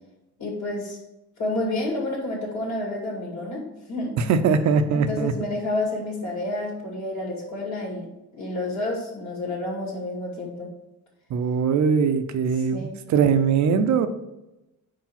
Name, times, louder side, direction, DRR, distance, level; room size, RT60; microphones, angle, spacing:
voice 1, 0.4-1.0 1.4-4.2 4.9-10.7 12.6-13.0, left 2 dB, 70° left, -2 dB, 2.2 m, -30 dB
voice 2, 4.2-5.3 11.3-14.1, right 6 dB, 70° right, 10 dB, 0.7 m, -21 dB
4.8 x 4.7 x 5.9 m, 0.94 s
cardioid pair, 90°, 30 cm